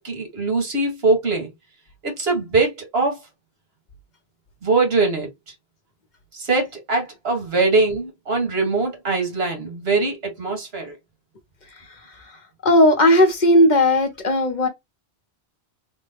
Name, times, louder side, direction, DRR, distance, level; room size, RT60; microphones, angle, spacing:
voice 1, 0.0-1.5 2.0-3.2 4.6-5.3 6.3-10.9, right 3 dB, 75° right, 1.6 m, -22 dB
voice 2, 12.6-14.7, left 1 dB, 50° left, 0.9 m, -16 dB
3.4 x 2.1 x 3.4 m
omnidirectional pair, 1.1 m